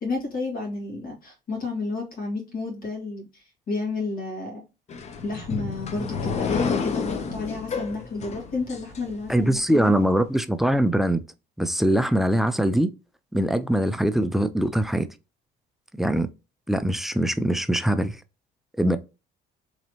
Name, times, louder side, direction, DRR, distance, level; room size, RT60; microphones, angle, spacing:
voice 1, 0.0-4.6 5.2-9.9, left 3 dB, 60° left, 1.7 m, -31 dB
sound 1, 4.9-9.6, left 5 dB, 40° left, 0.6 m, -30 dB
voice 2, 9.3-11.2 11.6-12.9 13.3-15.1 16.0-16.3 16.7-18.2 18.8-19.0, right 1 dB, ahead, 0.3 m, -22 dB
3.1 x 2.9 x 2.8 m
cardioid pair, 110°, 17 cm